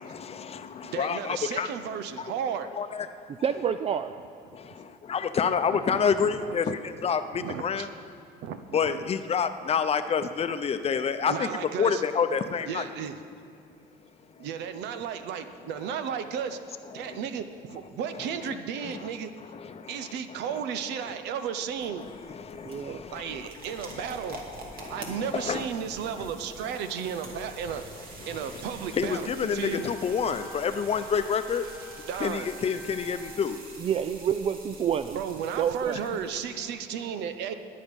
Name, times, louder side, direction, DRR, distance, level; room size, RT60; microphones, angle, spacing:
voice 1, 0.0-1.7 2.2-2.3 2.7-3.6 4.5-7.9 8.7-11.5 11.8-12.9 14.0-14.5 15.9-16.0 16.8-17.2 18.1-19.1 19.4-20.6 21.0-21.2 21.8-24.4 24.7-25.7 26.1-26.3 26.6-27.1 27.7-31.7 32.2-33.6 35.9-36.0, left 6 dB, 35° left, 9 dB, 0.7 m, -30 dB
voice 2, 0.8-2.7 5.9-6.0 6.5-6.6 7.4-7.9 8.4-9.0 11.2-12.0 12.7-13.2 14.4-19.3 19.9-22.1 23.1-24.4 24.9-27.8 28.3-29.9 32.1-32.5 35.1-37.5, right 7 dB, 85° right, 10 dB, 0.9 m, -34 dB
voice 3, 3.4-4.2 22.6-23.0 33.8-35.2 35.6-36.0, right 8 dB, 35° right, 10 dB, 0.4 m, -28 dB
sound 1, 21.6-36.5, right 2 dB, 60° right, 2.4 m, -46 dB
Wind instrument woodwind instrument, 29.6-33.4, right 2 dB, 10° right, 2.1 m, -48 dB
20.0 x 8.6 x 5.4 m, 2.3 s
cardioid pair, 110°, 17 cm